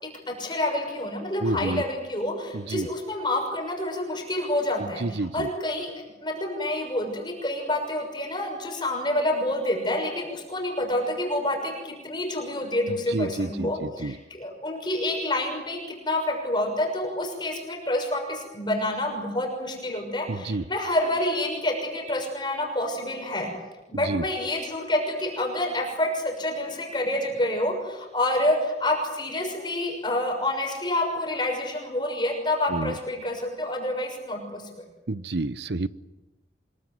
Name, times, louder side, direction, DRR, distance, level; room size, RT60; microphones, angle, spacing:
voice 1, 0.0-5.9 6.2-23.5 23.9-34.6, left 1 dB, 25° left, 3 dB, 6.3 m, -28 dB
voice 2, 1.4-1.8 2.5-2.9 5.0-5.5 13.1-14.1 20.3-20.6 23.9-24.2 32.7-33.0 35.1-35.9, right 2 dB, 75° right, 16 dB, 0.8 m, -29 dB
26.0 x 22.5 x 9.4 m, 1.0 s
head